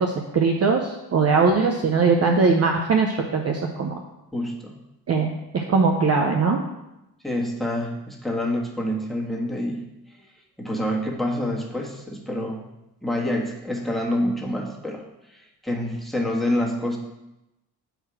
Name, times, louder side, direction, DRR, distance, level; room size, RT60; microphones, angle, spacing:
voice 1, 0.0-4.0 5.1-6.6, right 4 dB, 30° right, 2 dB, 0.7 m, -21 dB
voice 2, 4.3-4.7 7.2-9.9 10.1-10.2 10.6-12.6 13.0-15.0 15.3-17.0, left 1 dB, ahead, -1 dB, 1.5 m, -27 dB
4.9 x 4.5 x 6.0 m, 0.93 s
figure-of-eight pair, 45°, 48 cm